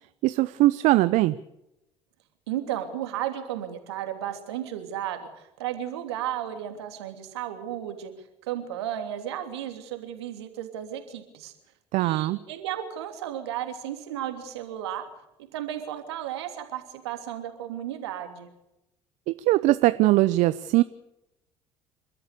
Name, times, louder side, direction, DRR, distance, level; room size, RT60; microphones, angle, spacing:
voice 1, 0.2-1.4 11.9-12.4 19.3-20.8, right 17 dB, 65° right, 14 dB, 0.8 m, -21 dB
voice 2, 2.5-8.1 8.4-11.5 12.0-15.1 15.5-18.5, right 11 dB, 80° right, 6 dB, 3.1 m, -34 dB
29.0 x 13.0 x 8.3 m, 0.89 s
hypercardioid pair, 60°, 14 cm